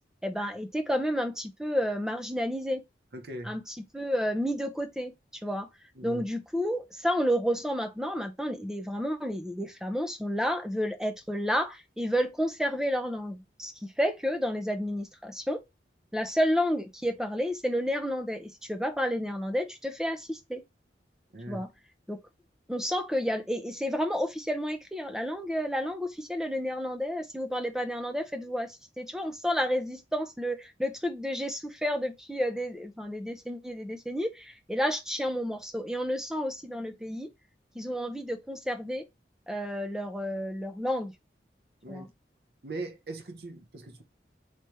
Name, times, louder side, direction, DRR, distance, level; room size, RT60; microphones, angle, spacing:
voice 1, 0.2-2.8 3.4-5.1 5.4-5.7 6.0-15.6 16.1-20.6 21.5-21.7 22.1-22.2 22.7-37.3 37.8-39.0 39.5-41.1 41.9-42.1, equal, 5° right, 0.6 m, -31 dB
voice 2, 3.1-3.6 6.0-6.2 21.3-21.6 41.8-42.1 42.6-44.0, right 2 dB, 65° right, 0.9 m, -40 dB
3.3 x 3.2 x 4.3 m
head